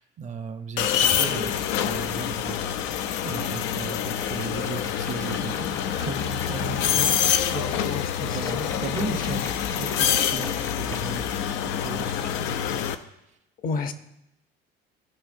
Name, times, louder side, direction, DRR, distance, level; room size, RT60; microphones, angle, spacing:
voice 1, 0.0-2.9 3.2-12.7, right 5 dB, 40° right, 8 dB, 0.7 m, -36 dB
sound 1, 0.8-12.9, left 9 dB, 85° left, 0.6 m, -26 dB
sound 2, 4.2-6.5 8.4-11.2, left 3 dB, 15° left, 0.4 m, -40 dB
voice 2, 7.5-8.7 9.1-9.2 13.6-13.9, left 5 dB, 50° left, 9 dB, 0.7 m, -32 dB
15.5 x 5.6 x 2.6 m, 0.86 s
cardioid pair, 110°, 19 cm